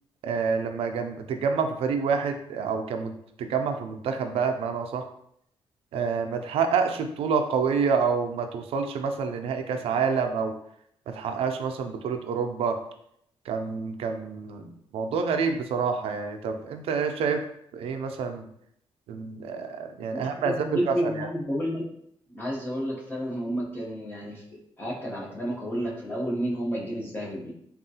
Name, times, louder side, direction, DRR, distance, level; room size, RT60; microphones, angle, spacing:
voice 1, 0.2-3.1 3.4-5.0 5.9-10.5 11.1-12.8 13.5-17.4 17.7-18.4 19.1-21.3, right 5 dB, 90° right, 6 dB, 0.4 m, -28 dB
voice 2, 20.1-21.8 22.3-24.4 24.8-27.5, equal, 20° left, -4 dB, 0.8 m, -31 dB
3.5 x 2.3 x 2.7 m, 0.71 s
wide cardioid pair, 150°, 10 cm